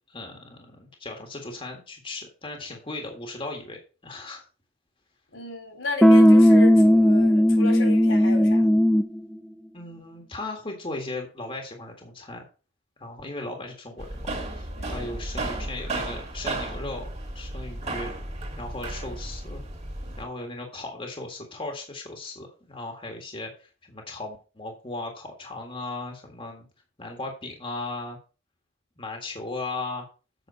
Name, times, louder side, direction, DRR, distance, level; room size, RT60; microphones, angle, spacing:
voice 1, 0.1-4.4 9.7-12.4 13.0-17.1 17.4-18.1 18.6-19.6 20.2-26.7 27.0-28.2 29.0-30.1, left 2 dB, 30° left, 2 dB, 1.8 m, -37 dB
voice 2, 5.3-8.7 14.7-15.2, left 2 dB, 80° left, 4 dB, 4.0 m, -34 dB
sound 1, 6.0-9.2, equal, ahead, 0.6 m, -16 dB
sound 2, 14.0-20.2, right 2 dB, 35° right, 2.4 m, -34 dB
8.3 x 5.7 x 6.3 m, 0.35 s
head